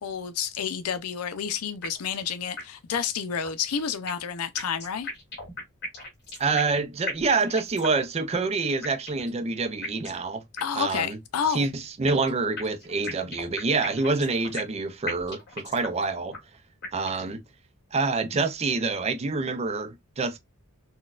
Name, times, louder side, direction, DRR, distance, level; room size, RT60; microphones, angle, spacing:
voice 1, 0.0-5.1 10.6-11.7, left 7 dB, 90° left, 0.5 m, -30 dB
sound 1, 1.8-2.2 2.6-2.7 2.9-3.0 3.4-4.3 4.6-6.8 7.1-8.0 8.3-8.4 8.8-9.3 9.8-10.2 10.6-10.7 10.9-11.0 11.4-12.3 12.6-14.8 15.1-16.0 16.3-16.4 16.8-17.3, left 2 dB, 50° left, 1.8 m, -37 dB
voice 2, 6.4-10.4 10.7-11.2 11.5-16.4 16.9-17.4 17.9-20.4, right 4 dB, 30° right, 0.4 m, -27 dB
3.9 x 2.2 x 2.3 m
head